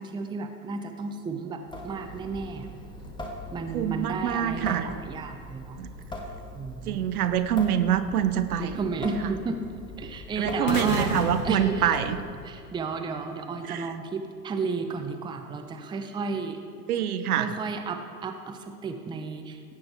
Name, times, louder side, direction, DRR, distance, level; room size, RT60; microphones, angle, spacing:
voice 1, 0.0-2.7 3.5-5.8 6.6-7.0 8.6-9.6 10.0-12.0 12.4-16.6 17.3-19.7, right 4 dB, 10° right, 6 dB, 0.7 m, -33 dB
Water tap faucet / Sink (filling or washing) / Drip, 1.7-12.6, left 1 dB, 10° left, 1.6 m, -41 dB
voice 2, 3.7-4.9 5.8-5.9 6.9-8.8 10.4-12.2 13.7-13.9 16.9-17.5, right 9 dB, 60° right, 11 dB, 0.9 m, -25 dB
sound 1, 10.7-12.8, left 3 dB, 75° left, 1.5 m, -33 dB
16.5 x 8.9 x 4.4 m, 2.3 s
figure-of-eight pair, 90°, 49 cm